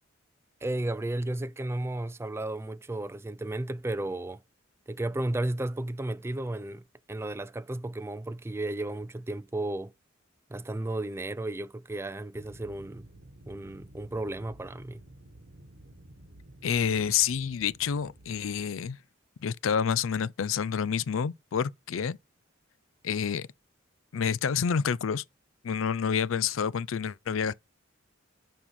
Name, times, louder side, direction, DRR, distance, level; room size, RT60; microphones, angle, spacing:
voice 1, 0.6-4.4 4.9-9.9 10.5-13.1 13.5-15.0, right 1 dB, 15° right, 0.4 m, -33 dB
sound 1, 12.3-18.6, right 1 dB, 60° right, 1.3 m, -52 dB
voice 2, 16.6-19.0 19.4-22.2 23.0-23.5 24.1-25.2 25.6-27.5, left 7 dB, 80° left, 0.4 m, -28 dB
7.4 x 5.6 x 5.0 m
head